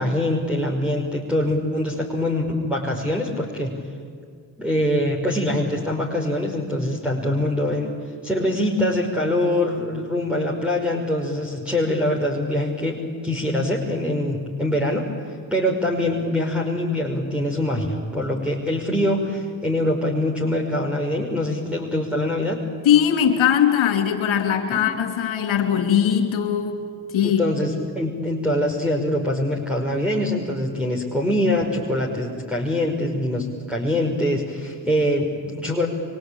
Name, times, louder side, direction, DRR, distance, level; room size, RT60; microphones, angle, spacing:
voice 1, 0.0-3.7 4.6-7.9 8.2-13.0 13.2-15.1 15.5-22.6 24.7-24.9 27.2-35.9, left 1 dB, ahead, -4 dB, 5.5 m, -24 dB
voice 2, 22.9-26.8 27.1-27.4, left 9 dB, 75° left, 4 dB, 3.3 m, -20 dB
26.0 x 24.5 x 9.0 m, 2.1 s
hypercardioid pair, 40°, 48 cm